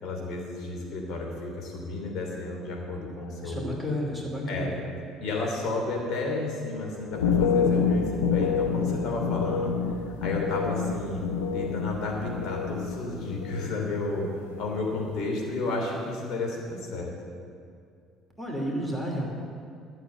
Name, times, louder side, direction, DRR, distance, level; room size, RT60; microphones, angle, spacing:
voice 1, 0.0-3.7 4.5-4.7 5.2-9.7 10.2-11.2 11.5-17.1, left 2 dB, 55° left, -1 dB, 3.1 m, -32 dB
voice 2, 3.4-4.8 18.4-19.3, equal, 5° left, -1 dB, 2.9 m, -31 dB
sound 1, 7.1-12.9 13.2-13.9 14.2-14.7, left 5 dB, 75° left, 0.8 m, -27 dB
12.5 x 7.3 x 8.8 m, 2.3 s
figure-of-eight pair, 55°, 0 cm